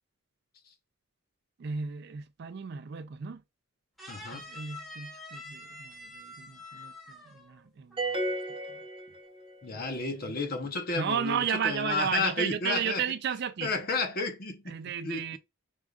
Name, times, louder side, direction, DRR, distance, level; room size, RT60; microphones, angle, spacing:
voice 1, 1.6-3.4 4.3-8.2 8.7-8.8 9.7-9.8 10.1-10.3 10.9-13.7 14.7-15.4, right 7 dB, 50° right, 0.3 m, -34 dB
sound 1, 4.0-7.6 7.9-8.3, left 1 dB, ahead, 1.0 m, -46 dB
voice 2, 4.1-4.5 9.6-13.0 13.6-14.8 15.0-15.4, left 3 dB, 45° left, 0.8 m, -32 dB
sound 2, 8.0-9.7, right 2 dB, 25° right, 0.8 m, -33 dB
4.9 x 3.6 x 2.3 m
head